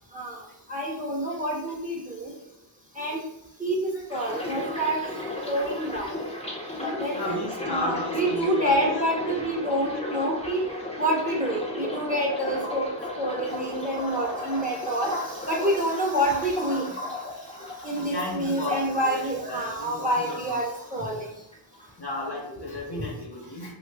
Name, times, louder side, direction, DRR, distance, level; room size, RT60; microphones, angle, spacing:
voice 1, 0.7-2.3 3.0-3.2 3.6-3.8 4.1-5.0 5.4-6.1 7.0-10.6 11.0-12.9 13.2-15.1 15.5-16.9 17.8-21.3 22.9-23.0, right 1 dB, 15° right, -3 dB, 1.1 m, -27 dB
sound 1, 4.1-20.1 20.3-21.3 21.5-21.9, left 1 dB, 15° left, 1.0 m, -35 dB
voice 2, 6.6-8.9 18.0-20.6 22.0-23.7, left 2 dB, 50° left, -2 dB, 1.0 m, -34 dB
3.0 x 2.4 x 3.4 m, 0.86 s
cardioid pair, 40°, 48 cm